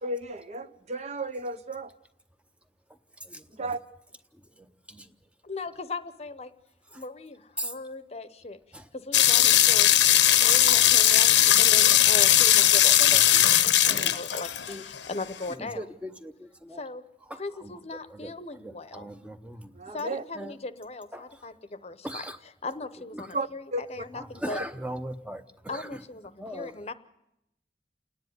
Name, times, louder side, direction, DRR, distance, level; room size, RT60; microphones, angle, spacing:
voice 1, 0.0-1.9 3.6-3.8 19.7-20.2 23.3-24.1, right 2 dB, 40° right, 11 dB, 0.7 m, -33 dB
voice 2, 5.4-6.5 6.9-8.6 8.9-9.9 10.4-16.0 16.8-17.0 17.3-19.1 19.9-24.6 25.7-26.9, left 3 dB, 35° left, 12 dB, 0.8 m, -38 dB
sound 1, 9.1-15.0, left 12 dB, 85° left, 0.9 m, -19 dB
voice 3, 12.8-13.2 13.9-14.2 14.7-14.8 15.8-16.3 16.7-16.8 18.1-18.3 18.6-19.6 20.4-20.5 21.1-21.2 22.0-22.4 24.4-25.8 26.4-26.7, right 1 dB, 5° right, 9 dB, 0.8 m, -37 dB
28.5 x 10.0 x 9.4 m, 0.84 s
head